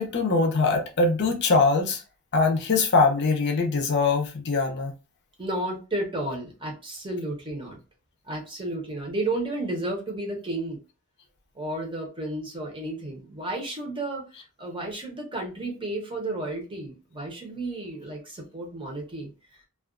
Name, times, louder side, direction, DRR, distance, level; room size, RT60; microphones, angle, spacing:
voice 1, 0.0-2.0 2.3-4.9, left 3 dB, 50° left, 0.5 m, -22 dB
voice 2, 5.4-7.8 8.3-10.8 11.5-19.3, right 2 dB, 25° right, 0.7 m, -32 dB
2.3 x 2.3 x 2.4 m
head